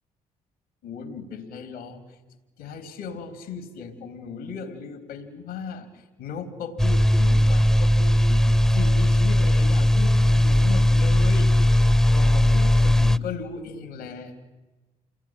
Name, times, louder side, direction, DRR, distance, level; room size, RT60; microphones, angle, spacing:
voice 1, 0.8-2.0 2.6-5.9 6.2-8.5 8.7-14.3, left 5 dB, 85° left, 8 dB, 3.3 m, -37 dB
sound 1, 6.8-13.2, left 1 dB, 5° left, 0.8 m, -18 dB
28.5 x 21.0 x 9.1 m, 1.1 s
hypercardioid pair, 55°, 16 cm